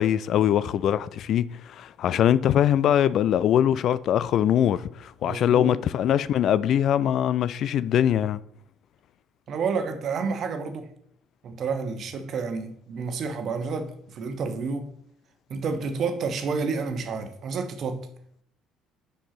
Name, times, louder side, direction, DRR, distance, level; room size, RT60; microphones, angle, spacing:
voice 1, 0.0-8.4, left 10 dB, 50° left, 0.3 m, -22 dB
voice 2, 5.2-5.8 9.5-10.9 11.4-14.9 15.5-18.1, right 5 dB, 45° right, 1.0 m, -30 dB
6.3 x 5.5 x 5.9 m
figure-of-eight pair, 50°, 0 cm